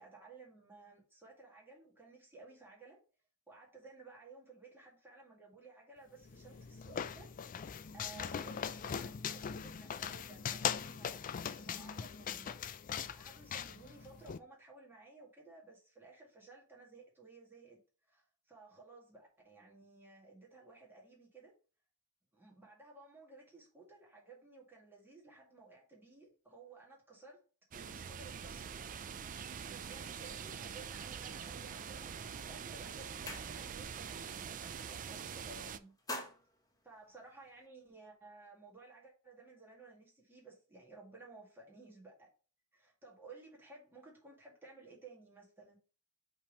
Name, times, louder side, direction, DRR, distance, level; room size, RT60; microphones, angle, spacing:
voice 1, 0.0-3.0 3.5-7.3 7.9-12.5 13.1-17.8 18.1-21.5 22.3-27.4 27.7-35.9 36.8-42.3 42.7-45.8, right 3 dB, 10° right, 2.0 m, -56 dB
sound 1, 6.2-14.4, left 7 dB, 35° left, 0.3 m, -40 dB
sound 2, 27.7-35.8, right 7 dB, 35° right, 0.4 m, -44 dB
sound 3, 33.1-34.0 34.3-34.6 34.9-35.5 35.8-37.7, left 1 dB, 15° left, 0.9 m, -47 dB
5.5 x 3.5 x 5.1 m
head